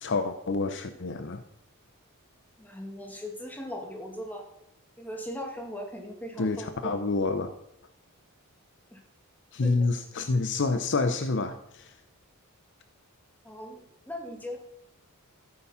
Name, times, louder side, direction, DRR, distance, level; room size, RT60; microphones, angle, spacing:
voice 1, 0.0-1.4 6.4-7.5 9.5-11.9, left 3 dB, 55° left, 9 dB, 0.7 m, -28 dB
voice 2, 2.6-4.4 5.0-6.9 8.9-9.0 9.6-9.9 10.2-10.3 13.4-14.6, equal, 10° left, 1 dB, 2.3 m, -39 dB
13.5 x 8.6 x 5.7 m, 0.82 s
head